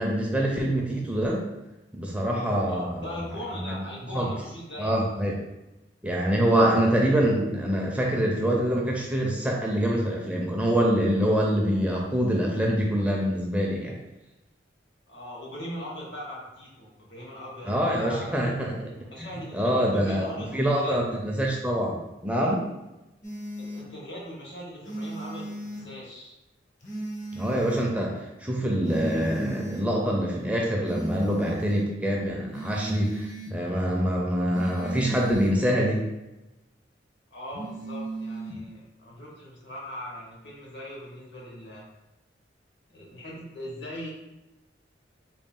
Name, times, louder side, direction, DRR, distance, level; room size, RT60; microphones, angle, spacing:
voice 1, 0.0-1.5 1.9-3.2 3.6-3.8 4.1-4.3 4.8-5.3 6.0-14.0 17.7-18.9 19.2-19.3 19.5-20.3 20.5-22.7 27.3-36.0, equal, 5° right, -2 dB, 0.4 m, -25 dB
voice 2, 2.7-5.0 15.1-18.5 19.1-21.0 23.6-26.3 37.3-41.8 42.9-44.1, left 1 dB, 70° left, -4 dB, 1.3 m, -40 dB
sound 1, 23.2-23.8 24.8-25.8 26.8-27.9 28.8-29.9 30.8-31.9 32.5-33.5 34.5-35.5 37.5-38.6, right 2 dB, 45° left, 0.8 m, -36 dB
3.9 x 2.2 x 3.6 m, 0.98 s
head